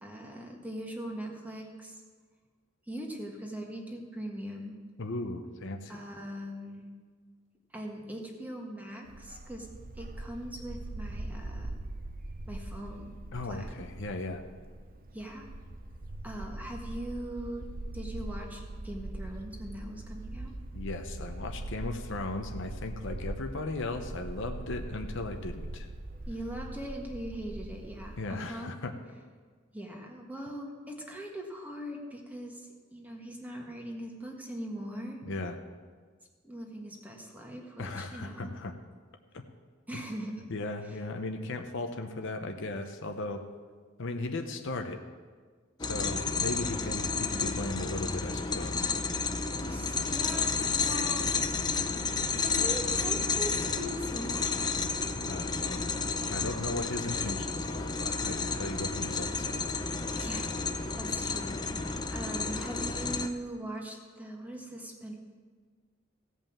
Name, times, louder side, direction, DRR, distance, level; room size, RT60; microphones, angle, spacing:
voice 1, 0.0-2.0 2.9-4.7 5.9-6.9 7.7-9.7 9.9-11.8 12.5-13.1 13.4-13.7 15.1-15.5 16.2-17.7 17.9-20.5 26.3-28.7 29.7-35.2 36.4-38.5 39.9-40.4 49.5-51.3 52.4-54.6 60.1-60.5 61.0-65.1, right 1 dB, 10° right, 0 dB, 1.5 m, -40 dB
voice 2, 5.0-6.0 13.3-14.4 20.7-25.9 28.2-28.9 35.3-35.6 37.8-38.7 39.9-40.0 40.5-43.4 44.0-45.0 45.8-48.9 55.3-55.9 56.3-59.7, left 2 dB, 65° left, 5 dB, 0.9 m, -37 dB
Bark, 9.1-28.2, right 1 dB, 45° right, 0.7 m, -41 dB
sound 1, 45.8-63.3, left 4 dB, 20° left, 0.6 m, -31 dB
16.5 x 5.5 x 7.3 m, 1.6 s
head